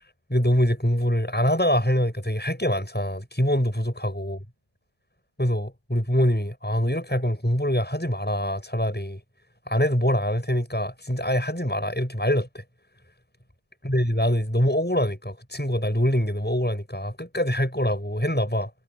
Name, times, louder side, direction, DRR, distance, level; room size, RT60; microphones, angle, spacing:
voice 1, 0.3-4.4 5.4-9.2 9.7-12.6 13.8-18.7, equal, 10° left, 6.9 m, -24 dB
omnidirectional pair, 1.2 m